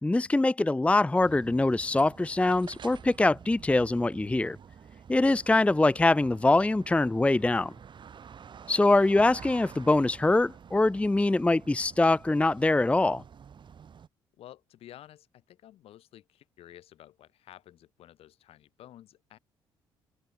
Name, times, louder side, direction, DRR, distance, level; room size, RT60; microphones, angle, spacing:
voice 1, 0.0-4.6 5.1-7.7 8.7-13.2, left 2 dB, 10° left, 0.6 m, -23 dB
sound 1, 1.2-14.1, right 7 dB, 50° right, 4.7 m, -49 dB
voice 2, 14.4-19.4, left 12 dB, 70° left, 5.8 m, -53 dB
supercardioid pair, 60°, 10 cm